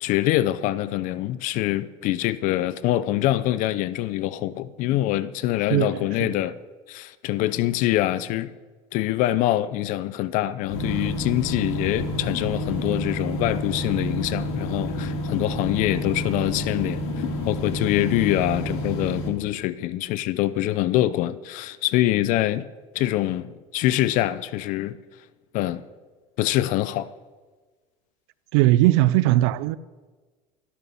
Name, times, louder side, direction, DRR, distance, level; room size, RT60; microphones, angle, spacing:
voice 1, 0.0-6.6 6.9-8.5 8.9-22.7 22.9-25.0 25.5-25.8 26.4-27.1, left 14 dB, 65° left, 0.6 m, -24 dB
voice 2, 5.7-6.4 28.5-29.8, right 16 dB, 85° right, 0.5 m, -20 dB
sound 1, 10.7-19.3, equal, 80° left, 3.2 m, -29 dB
13.0 x 12.5 x 7.0 m
supercardioid pair, 120°, 14 cm